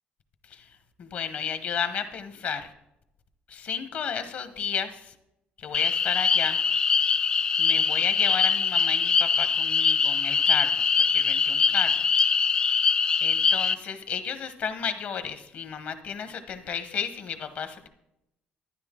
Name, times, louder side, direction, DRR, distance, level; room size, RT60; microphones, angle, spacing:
voice 1, 1.0-2.7 3.5-5.1 5.6-6.6 7.6-10.8 11.1-12.1 13.2-17.9, left 7 dB, 45° left, 10 dB, 1.0 m, -32 dB
sound 1, 5.7-13.8, left 6 dB, 25° left, 0.3 m, -23 dB
12.0 x 10.5 x 3.7 m, 0.85 s
cardioid pair, 170°, 3 cm